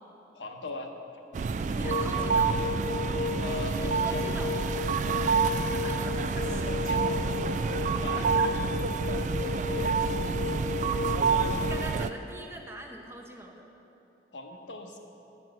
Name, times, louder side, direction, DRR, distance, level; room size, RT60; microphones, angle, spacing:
voice 1, 0.3-0.9 1.6-2.3 3.4-4.2 6.5-7.3 7.9-8.6 14.3-15.0, left 2 dB, 85° left, 3 dB, 1.0 m, -40 dB
sound 1, 1.3-12.1, right 5 dB, 40° right, 0.3 m, -28 dB
voice 2, 1.6-2.5 3.8-4.5 5.6-6.7 8.1-8.5 11.6-13.7, right 1 dB, 15° right, 2 dB, 0.8 m, -42 dB
sound 2, 1.8-11.9, left 5 dB, 40° left, 0.3 m, -35 dB
9.5 x 6.0 x 7.6 m, 3.0 s
head